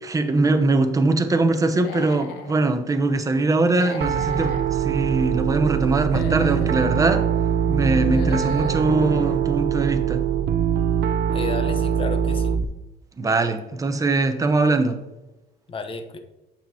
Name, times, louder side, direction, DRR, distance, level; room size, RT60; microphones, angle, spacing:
voice 1, 0.0-7.2 7.7-10.2 13.2-15.0, right 3 dB, 20° right, 7 dB, 0.9 m, -22 dB
Human voice / Animal, 1.7-2.5 3.7-4.7 5.9-6.8 7.9-8.8, left 5 dB, 75° left, 1.3 m, -36 dB
Piano, 4.0-12.6, right 8 dB, 65° right, 0.5 m, -23 dB
Fixed-wing aircraft airplane, 4.6-9.4, left 2 dB, 55° left, 1.9 m, -42 dB
voice 2, 11.3-12.6 15.7-16.2, left 4 dB, 30° left, 7 dB, 0.9 m, -32 dB
8.8 x 7.1 x 2.9 m, 1.0 s
cardioid pair, 110°, 17 cm